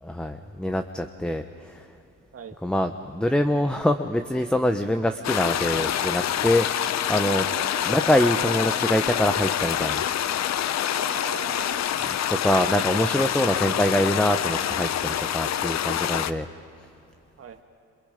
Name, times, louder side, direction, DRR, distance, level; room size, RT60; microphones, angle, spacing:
voice 1, 0.0-1.9 2.6-7.4 7.9-10.0 12.1-16.5, left 1 dB, 5° left, 7 dB, 0.9 m, -24 dB
sound 1, 5.2-16.3, left 10 dB, 60° left, 0.8 m, -26 dB
voice 2, 7.4-7.9 10.9-11.9 17.4-17.6, right 7 dB, 50° right, 5 dB, 1.5 m, -40 dB
28.0 x 28.0 x 5.2 m, 2.8 s
cardioid pair, 90°, 30 cm